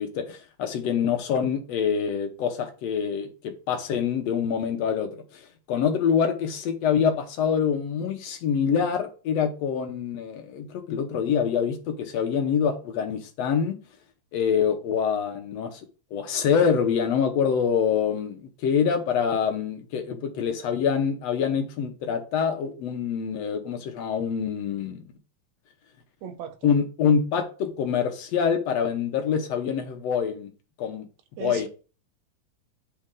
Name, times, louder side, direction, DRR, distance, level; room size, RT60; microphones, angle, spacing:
voice 1, 0.0-5.1 5.7-13.7 14.3-15.8 16.1-25.0 26.6-30.5 30.8-31.1 31.4-31.7, left 7 dB, 70° left, 1.9 m, -25 dB
voice 2, 26.2-26.7 31.4-31.7, right 6 dB, 80° right, 2.0 m, -36 dB
9.7 x 4.3 x 3.7 m
omnidirectional pair, 3.3 m